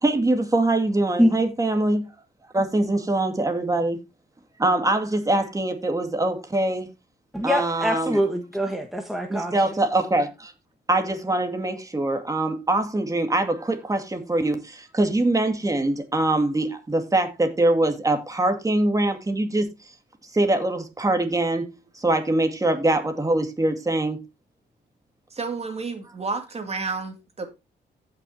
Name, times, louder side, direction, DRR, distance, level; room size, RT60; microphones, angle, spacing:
voice 1, 0.0-2.1 2.5-4.0 4.6-6.9 7.4-8.2 9.3-10.5 10.9-19.7 20.3-21.7 21.9-24.2, right 2 dB, 20° right, 2.2 m, -23 dB
voice 2, 7.3-9.5, equal, ahead, 1.4 m, -23 dB
voice 3, 25.3-27.5, right 4 dB, 35° right, 2.4 m, -31 dB
15.0 x 6.1 x 2.8 m
cardioid pair, 90°, 19 cm